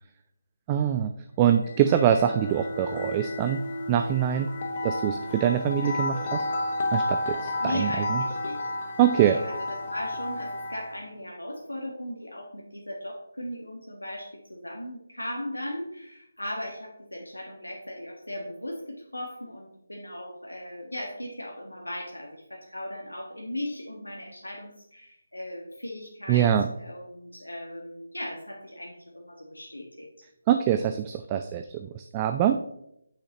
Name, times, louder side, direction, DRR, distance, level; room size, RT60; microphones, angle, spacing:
voice 1, 0.7-3.6 3.9-4.5 4.8-6.4 6.9-8.2 9.0-9.4 26.3-26.7 30.5-32.6, right 10 dB, 20° right, 7 dB, 0.3 m, -24 dB
sound 1, 1.5-11.0, left 2 dB, 35° left, 0.9 m, -32 dB
voice 2, 7.6-8.7 9.1-26.5 26.8-30.3, left 1 dB, 85° left, -1 dB, 1.3 m, -38 dB
8.3 x 5.7 x 2.9 m, 0.78 s
figure-of-eight pair, 155°, 0 cm